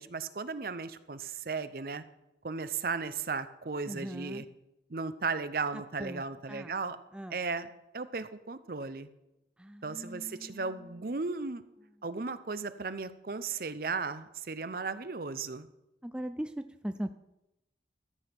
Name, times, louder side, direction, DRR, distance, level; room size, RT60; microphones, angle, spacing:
voice 1, 0.0-2.0 2.4-4.4 4.9-7.0 7.3-9.1 9.8-11.6 12.0-15.7, right 4 dB, 55° right, 13 dB, 0.7 m, -36 dB
voice 2, 3.9-4.5 5.7-6.8 7.1-7.4 9.6-11.1 16.0-17.1, right 1 dB, 5° right, 9 dB, 0.4 m, -40 dB
13.5 x 7.1 x 5.9 m, 0.90 s
head